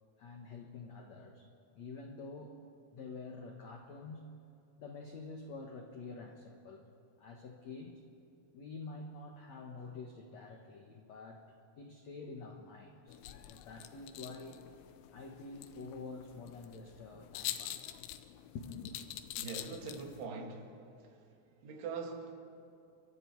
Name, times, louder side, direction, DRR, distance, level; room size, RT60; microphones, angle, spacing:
voice 1, 0.2-1.5 1.7-2.6 2.9-4.3 4.8-6.9 7.2-8.0 8.5-14.6 15.1-17.9 18.5-19.0, left 3 dB, 70° left, 2 dB, 1.7 m, -48 dB
sound 1, 13.1-20.3, left 13 dB, 85° left, 3.2 m, -46 dB
voice 2, 19.4-20.7 21.6-22.4, right 4 dB, 90° right, 2 dB, 4.6 m, -42 dB
30.0 x 24.0 x 4.7 m, 2.7 s
omnidirectional pair, 5.2 m